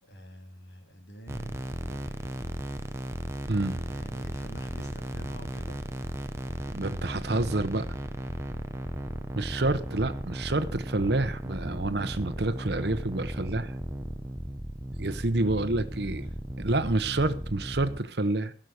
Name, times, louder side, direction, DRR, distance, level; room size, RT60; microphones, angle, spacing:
voice 1, 0.0-3.0 3.9-5.8 15.5-15.6 16.2-16.4, right 1 dB, 75° left, 4 dB, 3.1 m, -47 dB
sound 1, 1.3-18.0, equal, 15° right, 0.8 m, -36 dB
voice 2, 3.5-3.9 6.7-7.8 9.3-13.7 15.0-16.3 16.6-18.5, right 2 dB, 65° right, 12 dB, 1.0 m, -28 dB
16.5 x 6.4 x 6.7 m, 0.43 s
head